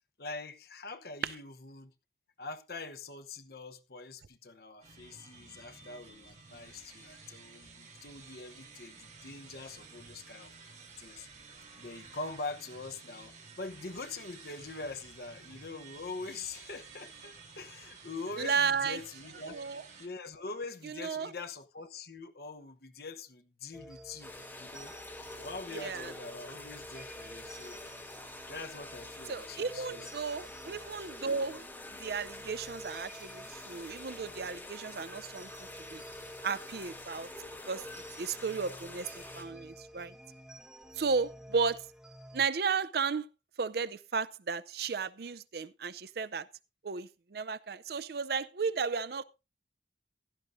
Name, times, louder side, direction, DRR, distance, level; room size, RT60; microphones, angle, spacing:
voice 1, 0.2-1.9 2.4-11.5 11.8-19.6 20.0-24.3 24.6-24.9 25.4-27.8 28.5-30.1, left 3 dB, 55° left, 1.0 m, -44 dB
sound 1, 4.8-20.1, right 4 dB, 40° right, 2.9 m, -53 dB
voice 2, 18.4-19.0 19.5-19.8 20.8-21.3 25.7-26.1 29.3-31.7 32.0-36.0 36.4-37.3 37.7-37.9 38.2-40.1 41.0-41.9 42.3-43.3 43.6-46.5 46.8-49.2, right 5 dB, 55° right, 0.5 m, -34 dB
sound 2, 23.7-42.5, equal, 5° right, 1.0 m, -52 dB
sound 3, 24.2-39.4, left 2 dB, 10° left, 2.1 m, -47 dB
16.0 x 12.5 x 2.6 m
head